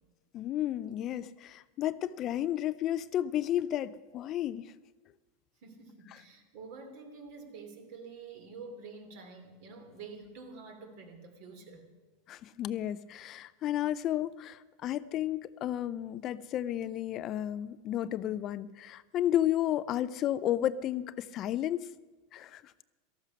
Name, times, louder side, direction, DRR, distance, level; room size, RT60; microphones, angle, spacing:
voice 1, 0.3-4.7 12.3-21.9 22.3-22.7, left 12 dB, 35° left, 16 dB, 0.4 m, -32 dB
voice 2, 5.6-11.9, right 4 dB, 55° right, 6 dB, 2.8 m, -48 dB
13.5 x 12.5 x 6.1 m, 1.3 s
supercardioid pair, 140°, 0 cm